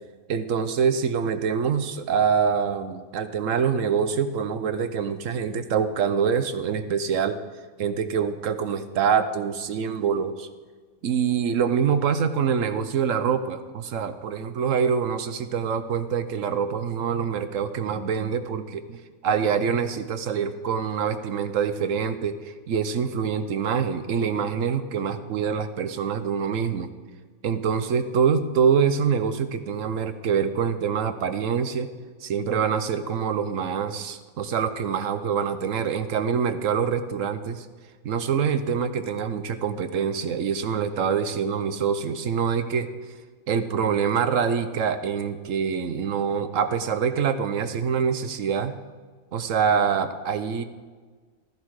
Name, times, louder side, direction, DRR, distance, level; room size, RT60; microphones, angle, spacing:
voice 1, 0.3-7.4 7.8-10.5 11.0-26.9 27.4-31.9 32.2-37.7 38.0-42.9 43.5-48.7 49.3-50.6, right 7 dB, 75° right, 10 dB, 1.3 m, -25 dB
15.0 x 13.5 x 4.8 m, 1.5 s
omnidirectional pair, 1.4 m